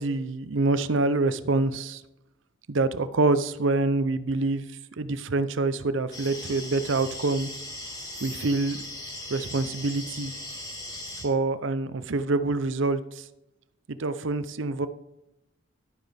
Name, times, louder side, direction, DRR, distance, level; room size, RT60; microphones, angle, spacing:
voice 1, 0.0-2.0 2.7-4.7 5.0-7.5 8.2-8.8 9.3-10.3 11.2-13.2 13.9-14.9, right 3 dB, 70° right, 13 dB, 0.6 m, -26 dB
sound 1, 6.1-11.3, left 1 dB, 20° left, 2.4 m, -38 dB
11.5 x 9.2 x 3.4 m, 0.88 s
head